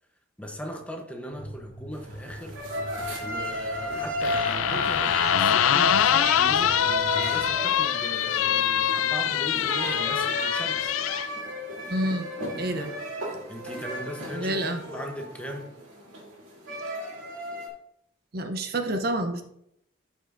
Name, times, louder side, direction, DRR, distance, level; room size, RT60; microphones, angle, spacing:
voice 1, 0.4-2.6 3.2-10.9 13.5-14.6 14.9-15.7, equal, 5° left, 0.8 m, -38 dB
sound 1, 1.3-7.6, equal, 45° left, 2.9 m, -44 dB
sound 2, 1.9-17.7, equal, 80° right, 2.3 m, -33 dB
sound 3, 4.2-11.3, left 10 dB, 85° left, 0.3 m, -24 dB
voice 2, 11.9-12.3 12.5-12.9 14.3-14.8 18.3-19.4, right 1 dB, 50° right, 0.6 m, -28 dB
12.5 x 5.3 x 2.5 m
head